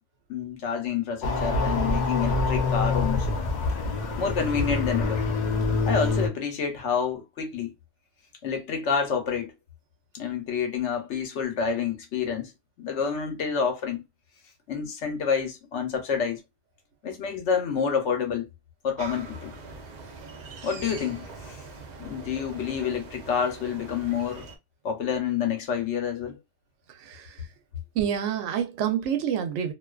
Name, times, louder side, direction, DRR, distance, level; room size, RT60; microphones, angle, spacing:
voice 1, 0.3-3.3 4.2-5.2 5.9-7.7 8.4-9.5 10.1-12.5 12.8-14.0 14.7-16.4 17.0-18.5 18.8-19.5 20.6-21.6 22.0-24.5 24.8-26.4, left 6 dB, 80° left, 1.1 m, -28 dB
sound 1, 1.2-6.3, left 3 dB, 50° left, 0.6 m, -25 dB
sound 2, 19.0-24.6, right 4 dB, 55° right, 0.5 m, -42 dB
voice 2, 26.9-27.5 27.9-29.7, right 9 dB, 90° right, 0.9 m, -28 dB
2.5 x 2.3 x 2.2 m
omnidirectional pair, 1.2 m